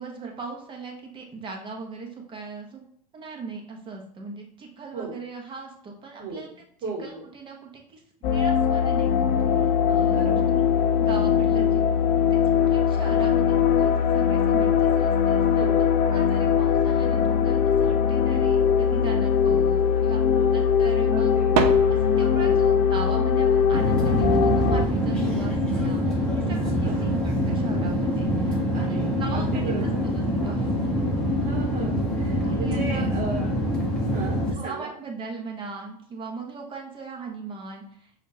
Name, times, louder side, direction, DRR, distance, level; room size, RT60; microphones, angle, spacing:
voice 1, 0.0-2.8 3.1-6.5 7.0-8.0 8.3-10.3 11.0-11.8 12.3-20.2 20.5-21.4 21.9-30.1 30.4-30.8 32.4-33.1 34.5-38.2, right 4 dB, 25° right, 1 dB, 1.0 m, -39 dB
voice 2, 6.2-7.2 10.1-10.6 11.5-11.7 15.5-16.0 20.0-20.8 21.1-21.6 22.3-22.6 26.8-27.2 28.7-30.5 31.4-33.5 34.1-34.9, right 4 dB, 40° right, 0 dB, 1.4 m, -36 dB
sound 1, 8.2-24.8, left 7 dB, 45° left, 0.5 m, -21 dB
sound 2, 18.1-18.2 19.0-20.0 21.0-21.1 21.3-32.6, right 8 dB, 60° right, 0.5 m, -36 dB
sound 3, 23.7-34.5, equal, 5° left, 1.0 m, -25 dB
5.0 x 2.5 x 2.7 m, 0.64 s
supercardioid pair, 120°, 21 cm